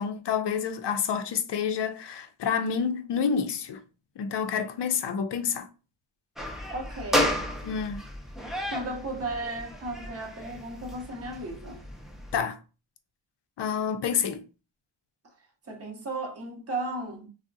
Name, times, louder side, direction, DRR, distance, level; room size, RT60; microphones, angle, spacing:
voice 1, 0.0-3.8 4.2-5.7 7.6-8.0 12.3-12.6 13.6-14.4, left 7 dB, 60° left, 0.5 m, -28 dB
sound 1, 6.4-12.4, equal, ahead, 0.4 m, -33 dB
voice 2, 6.7-7.5 8.7-11.8 15.7-17.3, right 2 dB, 30° right, 0.7 m, -35 dB
3.5 x 2.1 x 2.5 m
wide cardioid pair, 120°, 48 cm